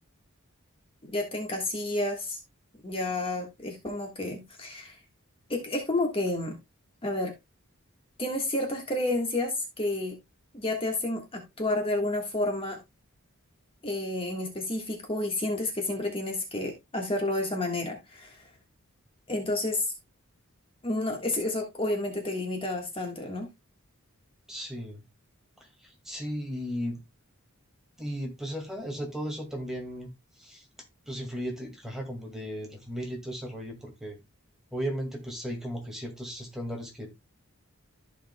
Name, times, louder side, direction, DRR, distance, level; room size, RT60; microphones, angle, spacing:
voice 1, 1.1-2.4 2.8-5.0 5.5-6.5 7.0-7.3 8.2-10.1 10.5-12.8 13.8-18.5 19.3-19.9 20.8-23.5, left 2 dB, 25° left, 2 dB, 1.5 m, -30 dB
voice 2, 24.5-25.0 25.6-27.0 28.0-30.7 31.1-34.2 34.7-37.1, equal, ahead, 1 dB, 2.0 m, -36 dB
14.0 x 5.1 x 2.2 m, 0.21 s
head